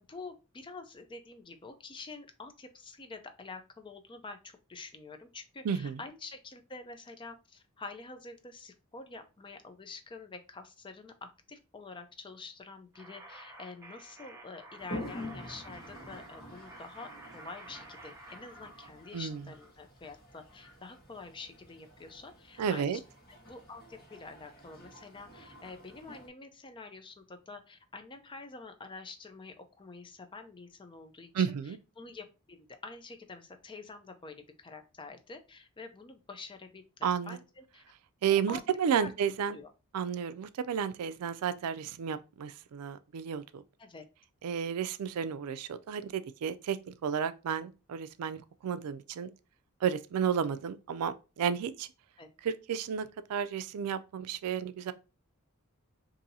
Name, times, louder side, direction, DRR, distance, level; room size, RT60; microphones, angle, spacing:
voice 1, 0.0-11.1 11.5-23.0 23.5-31.5 32.0-37.8 38.3-38.6 39.0-39.1 39.5-39.7 43.8-44.0 52.2-52.3, left 3 dB, 20° left, 0.4 m, -47 dB
voice 2, 5.6-6.0 19.1-19.4 22.6-23.0 31.3-31.8 37.0-37.4 38.2-39.6 39.9-43.6 44.4-49.3 49.8-51.9 52.4-54.9, right 7 dB, 80° right, 0.4 m, -32 dB
sound 1, 12.9-18.9, right 2 dB, 10° right, 0.7 m, -51 dB
Toilet flush, 14.8-26.3, left 1 dB, 45° left, 1.2 m, -48 dB
2.7 x 2.6 x 3.9 m
head